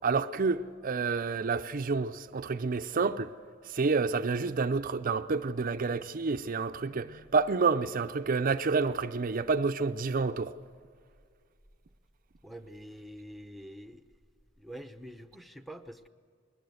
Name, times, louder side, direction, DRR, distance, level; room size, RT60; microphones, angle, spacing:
voice 1, 0.0-3.3 3.6-10.5, right 4 dB, 45° right, 0.5 m, -29 dB
voice 2, 12.4-14.0 14.6-16.1, equal, ahead, 0.8 m, -46 dB
21.5 x 19.0 x 7.9 m
head